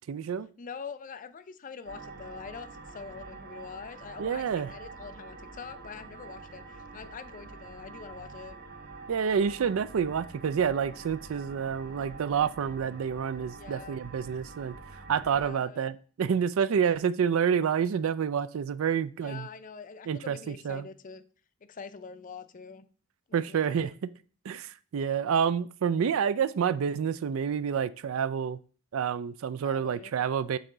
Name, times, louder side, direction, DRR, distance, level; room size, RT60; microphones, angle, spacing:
voice 1, 0.1-0.5 4.2-4.7 9.1-19.5 20.1-20.9 23.3-24.1 24.4-28.6 28.9-30.6, right 7 dB, 70° right, 15 dB, 0.4 m, -28 dB
voice 2, 0.6-8.6 13.5-14.0 15.3-15.8 19.2-21.2 21.6-22.9 23.3-23.9 29.6-30.1, left 5 dB, 40° left, 12 dB, 0.4 m, -44 dB
sound 1, 1.9-15.5, right 3 dB, 50° right, 0.8 m, -46 dB
6.6 x 4.0 x 3.8 m, 0.41 s
head